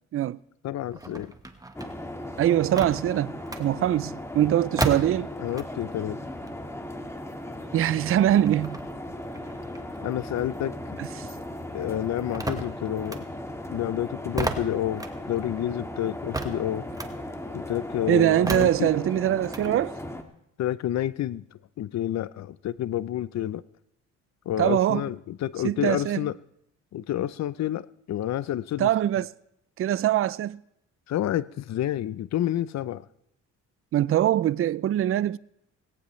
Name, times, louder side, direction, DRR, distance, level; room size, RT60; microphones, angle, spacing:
voice 1, 0.6-1.3 5.4-6.2 10.0-11.0 11.7-13.3 13.7-16.9 17.5-18.9 20.6-23.6 24.5-26.4 26.9-29.3 31.1-33.1, left 12 dB, 60° left, 0.6 m, -29 dB
sound 1, 0.8-6.0 6.3-11.2 11.5-19.7, right 2 dB, 10° right, 1.4 m, -36 dB
sound 2, 1.7-20.2, left 1 dB, 10° left, 1.7 m, -37 dB
voice 2, 2.4-5.3 7.7-8.8 18.1-20.0 24.6-25.0 25.6-26.2 28.8-29.2 29.8-30.6 33.9-35.4, right 12 dB, 45° right, 0.5 m, -23 dB
18.5 x 17.5 x 3.2 m
cardioid pair, 90°, 30 cm